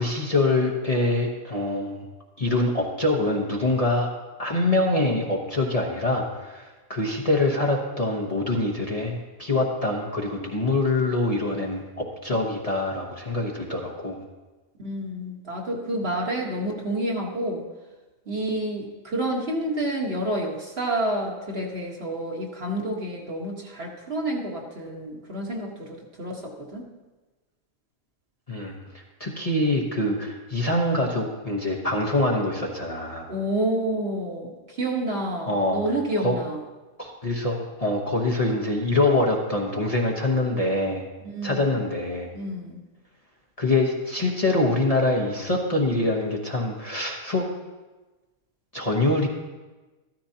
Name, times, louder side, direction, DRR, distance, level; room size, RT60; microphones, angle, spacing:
voice 1, 0.0-2.0 2.4-4.1 4.4-14.2 28.5-33.3 35.5-35.8 36.2-36.3 37.0-41.0 41.4-42.3 43.6-47.4 48.7-49.3, left 2 dB, 30° left, -1 dB, 1.1 m, -24 dB
voice 2, 14.8-17.7 18.3-26.8 33.3-36.6 41.2-41.8 42.3-42.8, right 1 dB, 45° right, -1 dB, 1.7 m, -29 dB
14.0 x 13.5 x 2.9 m, 1.2 s
omnidirectional pair, 1.4 m